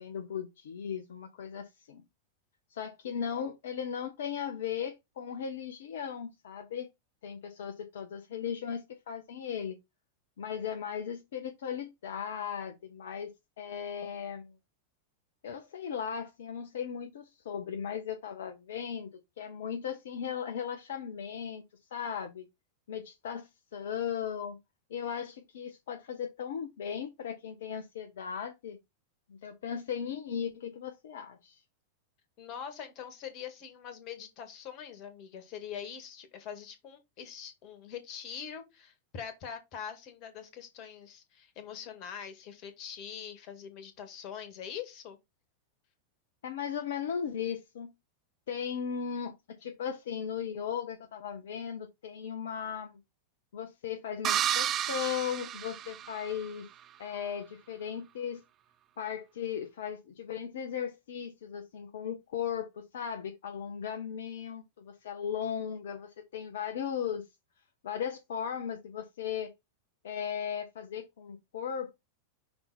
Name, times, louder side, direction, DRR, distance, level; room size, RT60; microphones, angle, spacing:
voice 1, 0.0-2.0 2.7-6.9 7.2-9.8 10.4-14.6 15.4-19.1 19.4-21.6 21.9-22.5 22.9-24.6 24.9-28.8 29.3-31.6 46.4-47.9 48.5-53.0 53.5-56.7 57.0-58.4 59.0-67.3 67.8-69.5 70.0-71.9, left 8 dB, 60° left, 0.8 m, -37 dB
voice 2, 32.4-45.2, left 8 dB, 40° left, 1.7 m, -43 dB
sound 1, 54.2-56.5, right 11 dB, 30° right, 0.4 m, -31 dB
5.8 x 4.0 x 4.1 m
figure-of-eight pair, 90°, 0 cm